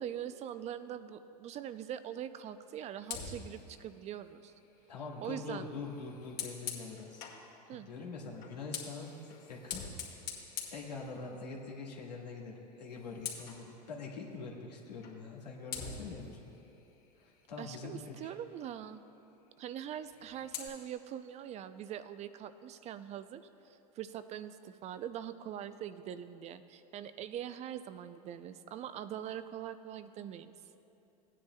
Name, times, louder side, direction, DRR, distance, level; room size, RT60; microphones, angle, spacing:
voice 1, 0.0-4.5 5.2-5.7 7.7-7.9 17.6-19.0 19.6-30.5, right 10 dB, 35° right, 12 dB, 0.4 m, -43 dB
Fire, 3.0-7.5 8.4-11.6 12.0-12.2 12.6-13.7 15.0-15.2 15.7-18.0 19.9-20.7, left 7 dB, 50° left, 2.1 m, -45 dB
voice 2, 4.9-7.2 7.7-9.8 10.7-16.4 17.2-18.4, left 4 dB, 85° left, -2 dB, 1.6 m, -44 dB
17.0 x 9.8 x 2.2 m, 2.8 s
hypercardioid pair, 90°, 21 cm